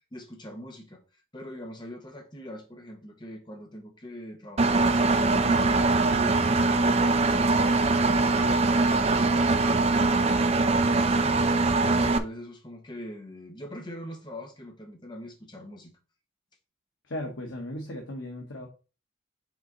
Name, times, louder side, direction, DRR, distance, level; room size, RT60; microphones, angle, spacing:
voice 1, 0.1-1.0 1.3-5.8 6.0-15.9, equal, 25° left, 1.1 m, -43 dB
Engine, 4.6-12.2, right 3 dB, 35° right, 0.4 m, -22 dB
voice 2, 17.1-18.7, left 1 dB, 90° left, 1.3 m, -36 dB
6.0 x 4.1 x 3.9 m
head